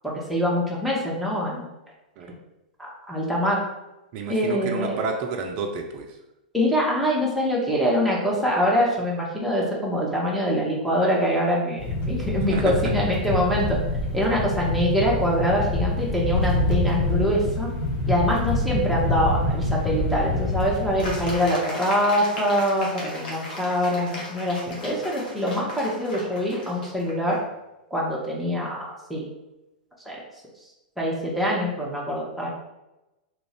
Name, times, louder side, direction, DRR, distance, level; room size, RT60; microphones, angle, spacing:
voice 1, 0.0-1.7 2.8-3.6 4.3-5.0 6.5-13.8 14.1-17.7 18.1-27.4 27.9-29.2 30.0-30.2 31.0-32.5, equal, ahead, -5 dB, 0.9 m, -24 dB
voice 2, 4.1-6.2 12.5-12.9, right 4 dB, 45° right, 2 dB, 0.4 m, -30 dB
sound 1, 11.8-21.4, left 1 dB, 35° left, 0.8 m, -26 dB
sound 2, 21.0-27.4, left 1 dB, 65° left, 1.0 m, -37 dB
2.8 x 2.5 x 3.2 m, 0.96 s
figure-of-eight pair, 100°, 5 cm